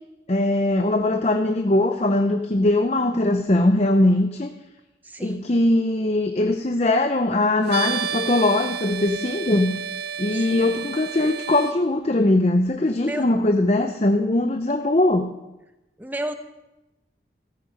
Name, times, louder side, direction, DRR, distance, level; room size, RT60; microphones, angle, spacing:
voice 1, 0.3-4.5 5.2-9.8 10.2-15.3, left 2 dB, 35° left, 6 dB, 0.7 m, -21 dB
voice 2, 5.0-5.5 10.3-10.7 12.9-13.3 16.0-16.3, right 1 dB, 10° right, 8 dB, 0.9 m, -32 dB
sound 1, 7.7-11.7, right 7 dB, 70° right, 0.7 m, -31 dB
14.5 x 14.0 x 5.3 m, 0.99 s
head